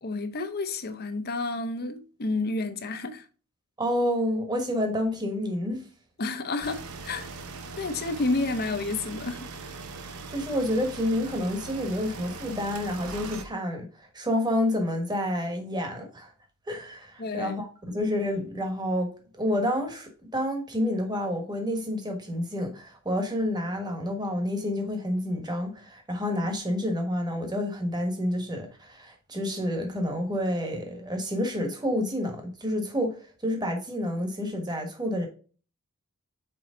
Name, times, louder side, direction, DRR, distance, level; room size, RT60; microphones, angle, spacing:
voice 1, 0.0-3.2 6.2-7.3 7.8-9.5 17.2-17.5, left 3 dB, 45° left, 0.8 m, -30 dB
voice 2, 3.8-5.8 10.3-13.9 14.1-16.3 16.7-19.1 19.4-33.2 33.4-35.3, left 1 dB, 20° right, 1.4 m, -29 dB
sound 1, 6.6-13.4, right 4 dB, 80° right, 0.9 m, -40 dB
6.1 x 4.5 x 3.7 m
head